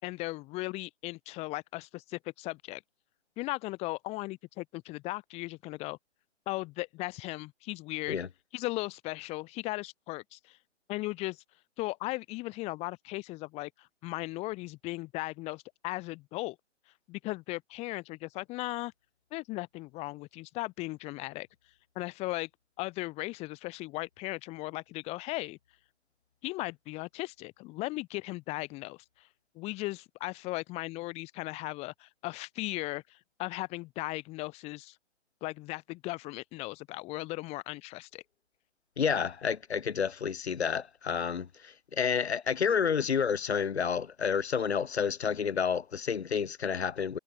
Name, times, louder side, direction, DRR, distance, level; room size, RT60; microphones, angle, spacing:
voice 1, 0.0-2.8 3.4-6.0 6.5-8.2 8.5-10.6 10.9-11.4 11.8-16.6 17.1-18.9 19.3-21.5 21.9-22.5 22.8-25.6 26.4-29.3 29.5-35.0 35.4-38.2, left 21 dB, 15° left, 6.1 m, -37 dB
voice 2, 39.0-47.2, left 6 dB, 60° left, 3.4 m, -30 dB
hypercardioid pair, 160°, 37 cm